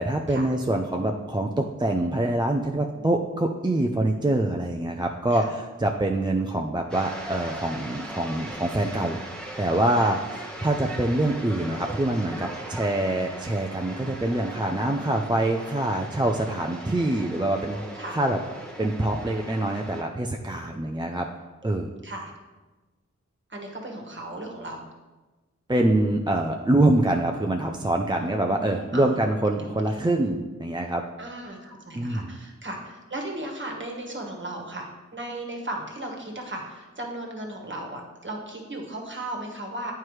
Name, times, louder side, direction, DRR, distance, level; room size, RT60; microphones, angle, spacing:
voice 1, 0.0-9.2 9.6-10.2 10.6-17.8 18.1-18.4 18.8-21.3 21.6-21.9 25.7-31.0 32.0-32.4, right 1 dB, 15° right, 2 dB, 0.4 m, -25 dB
sound 1, 6.9-20.0, right 1 dB, 5° left, 1.0 m, -39 dB
voice 2, 23.5-24.8 28.2-29.3 29.6-30.0 31.2-39.9, right 1 dB, 40° right, 0 dB, 1.4 m, -36 dB
9.2 x 4.5 x 3.2 m, 1.2 s
wide cardioid pair, 55°, 30 cm